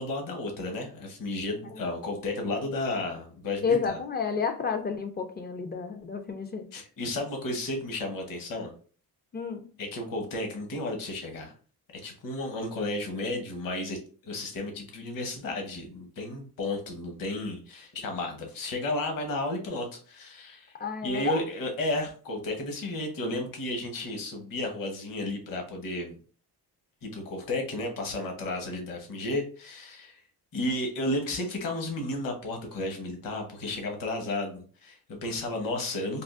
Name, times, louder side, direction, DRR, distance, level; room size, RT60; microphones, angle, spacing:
voice 1, 0.0-3.9 6.7-8.7 9.8-11.5 12.0-20.8 21.0-26.2 27.0-30.2 30.5-36.2, left 2 dB, 60° left, 0.9 m, -33 dB
voice 2, 3.6-6.7 9.3-9.7 20.7-21.4, left 5 dB, 25° left, 0.3 m, -30 dB
3.5 x 2.3 x 2.3 m
cardioid pair, 115°, 38 cm